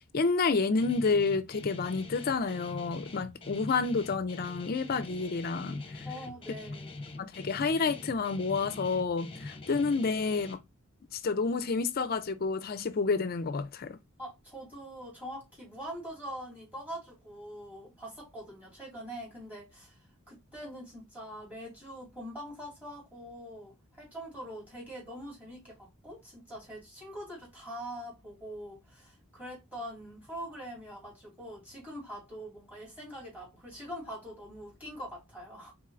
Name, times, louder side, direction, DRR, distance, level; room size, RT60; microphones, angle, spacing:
voice 1, 0.1-5.8 7.2-10.6 11.1-14.0, left 4 dB, 45° left, 0.4 m, -29 dB
Guitar, 0.8-10.5, left 2 dB, 25° left, 0.8 m, -43 dB
voice 2, 6.0-7.0 14.2-20.0 20.3-35.7, equal, 5° right, 2.8 m, -43 dB
4.3 x 3.9 x 2.4 m
head